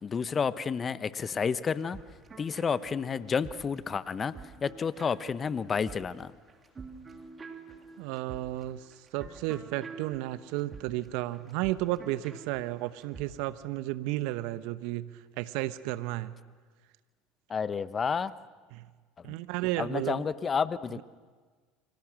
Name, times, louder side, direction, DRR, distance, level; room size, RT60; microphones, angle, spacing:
voice 1, 0.0-2.0 2.4-4.3 4.6-6.3 17.5-18.3 19.8-21.0, left 6 dB, 30° left, 15 dB, 1.0 m, -30 dB
sound 1, 1.7-13.3, right 5 dB, 30° right, 3.0 m, -48 dB
voice 2, 8.0-8.9 9.1-16.3 18.7-18.9 19.2-20.2 21.0-21.1, right 16 dB, 65° right, 14 dB, 1.0 m, -33 dB
29.0 x 25.0 x 6.3 m, 1.5 s
hypercardioid pair, 75°, 0 cm